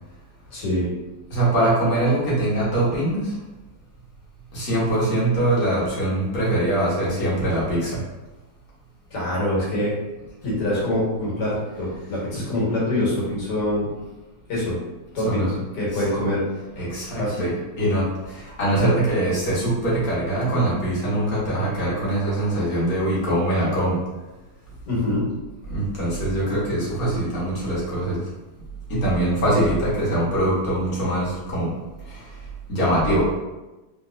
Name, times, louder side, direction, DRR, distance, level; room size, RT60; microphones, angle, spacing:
voice 1, 0.5-0.9 9.1-9.9 10.4-13.9 14.5-14.8 15.1-15.5 15.8-16.4 17.2-17.5 24.9-25.3, left 1 dB, 80° left, -6 dB, 1.9 m, -24 dB
voice 2, 1.3-3.3 4.5-8.0 15.2-15.5 15.9-16.0 16.8-24.0 25.7-28.2 28.9-31.7 32.1-32.2 32.7-33.3, right 1 dB, 60° left, -7 dB, 1.6 m, -23 dB
3.4 x 3.1 x 2.4 m, 1.1 s
omnidirectional pair, 1.8 m